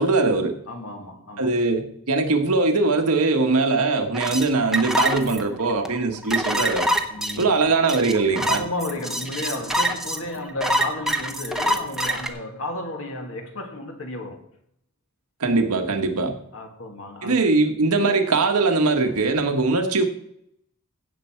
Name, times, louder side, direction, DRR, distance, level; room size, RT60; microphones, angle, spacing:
voice 1, 0.0-0.6 1.4-6.9 7.4-8.6 15.4-16.4 17.2-20.1, right 3 dB, 85° right, 1.5 m, -21 dB
voice 2, 0.7-1.5 7.1-7.5 8.3-14.4 16.5-17.5, left 1 dB, 65° left, 2.2 m, -33 dB
sound 1, 4.1-12.3, equal, ahead, 0.9 m, -25 dB
16.0 x 6.9 x 4.6 m
head